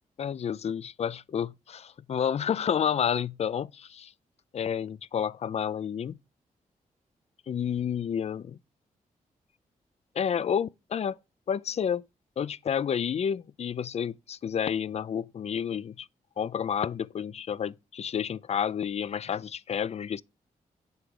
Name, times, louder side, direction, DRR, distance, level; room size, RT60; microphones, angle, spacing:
voice 1, 0.2-4.1 4.5-6.2 7.5-8.6 10.2-11.2 11.5-12.0 12.4-16.1 16.4-20.2, left 8 dB, 45° left, 0.4 m, -30 dB
8.0 x 3.8 x 4.7 m
cardioid pair, 60°, 15 cm